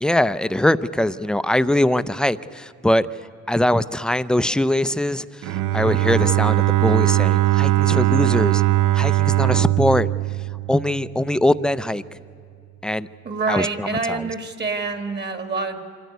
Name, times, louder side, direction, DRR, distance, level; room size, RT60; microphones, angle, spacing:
voice 1, 0.0-3.1 3.5-8.6 8.9-10.1 10.7-12.0 12.8-13.1 13.5-14.3, left 1 dB, 5° left, 14 dB, 0.5 m, -22 dB
Bowed string instrument, 5.4-11.3, right 17 dB, 90° right, 0.6 m, -20 dB
voice 2, 13.2-15.8, right 4 dB, 35° right, 7 dB, 1.8 m, -26 dB
25.0 x 14.0 x 9.4 m, 2.3 s
cardioid pair, 90°, 30 cm